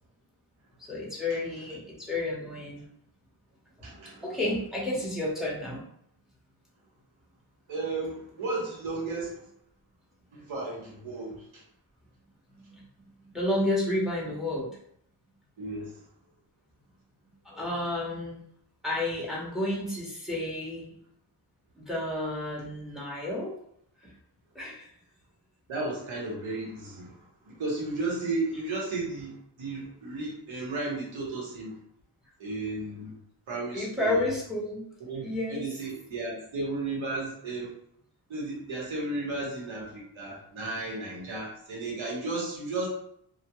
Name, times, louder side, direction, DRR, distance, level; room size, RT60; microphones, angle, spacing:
voice 1, 0.8-2.8 4.0-5.8 12.5-12.8 13.3-14.7 17.4-18.4 18.8-20.9 21.8-23.6 24.0-24.1 24.5-24.9 33.7-34.9 35.2-35.6, left 1 dB, ahead, -4 dB, 0.8 m, -31 dB
voice 2, 3.8-4.3 7.7-9.4 10.3-11.6 15.6-16.0 25.7-31.8 32.4-33.1 33.5-34.3 35.1-37.7 38.3-42.9, right 2 dB, 85° right, -3 dB, 1.1 m, -34 dB
2.3 x 2.2 x 2.9 m, 0.69 s
wide cardioid pair, 120°, 47 cm